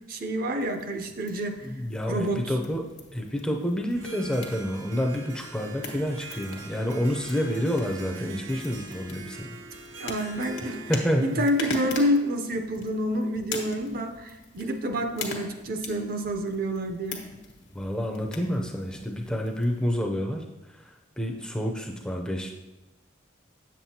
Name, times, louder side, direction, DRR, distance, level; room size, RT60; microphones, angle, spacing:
voice 1, 0.1-1.7 2.1-2.4 10.0-10.8 11.2-17.2, equal, 50° right, 6 dB, 0.6 m, -28 dB
sound 1, 0.6-20.0, left 4 dB, 75° left, 1.2 m, -43 dB
voice 2, 1.6-9.6 10.6-11.4 17.7-22.5, equal, 5° left, 1 dB, 0.5 m, -29 dB
Harp, 4.0-12.7, right 2 dB, 85° right, 0.9 m, -43 dB
7.8 x 7.4 x 2.8 m, 1.0 s
head